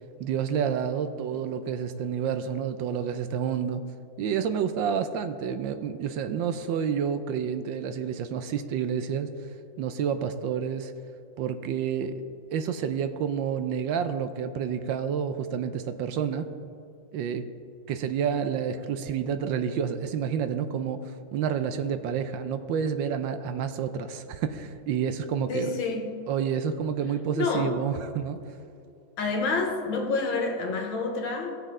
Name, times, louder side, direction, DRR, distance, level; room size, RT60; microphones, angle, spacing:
voice 1, 0.2-3.8 4.2-9.3 9.8-10.9 11.4-12.2 12.5-16.5 17.1-17.4 17.9-25.7 26.3-28.4, right 7 dB, 75° right, 9 dB, 1.2 m, -29 dB
voice 2, 25.5-26.1 27.4-27.8 29.2-31.6, left 4 dB, 80° left, 3 dB, 2.0 m, -28 dB
17.5 x 6.5 x 3.7 m, 2.5 s
omnidirectional pair, 2.2 m